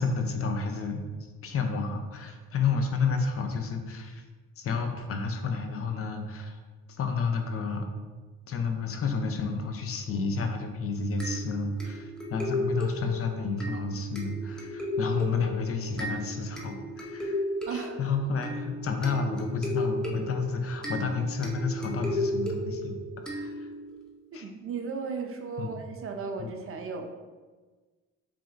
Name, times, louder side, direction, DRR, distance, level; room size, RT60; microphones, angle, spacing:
voice 1, 0.0-4.2 4.6-6.6 6.9-7.9 8.5-17.4 17.7-22.9 23.3-23.7 24.3-24.4 25.6-25.8 26.4-26.5, left 4 dB, 50° left, 5 dB, 0.6 m, -30 dB
sound 1, 11.2-24.0, equal, ahead, 0.7 m, -34 dB
voice 2, 17.7-18.0 24.3-27.1, right 5 dB, 45° right, 4 dB, 0.6 m, -35 dB
4.8 x 3.6 x 2.5 m, 1.3 s
cardioid pair, 90°, 30 cm